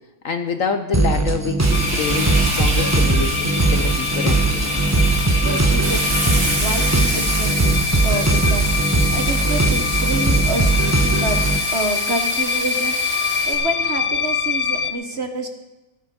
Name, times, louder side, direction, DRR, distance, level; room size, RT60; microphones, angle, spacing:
voice 1, 0.2-5.0, left 6 dB, 55° left, 8 dB, 1.0 m, -27 dB
sound 1, 0.9-11.6, right 3 dB, 15° right, 0.6 m, -20 dB
Frying (food), 1.6-13.5, right 1 dB, 55° right, 4.2 m, -27 dB
sound 2, 1.7-14.9, left 6 dB, 85° left, 1.6 m, -25 dB
voice 2, 5.4-11.4 11.7-15.5, right 2 dB, 40° right, 6 dB, 1.3 m, -28 dB
16.0 x 9.1 x 6.8 m, 1.1 s
omnidirectional pair, 2.0 m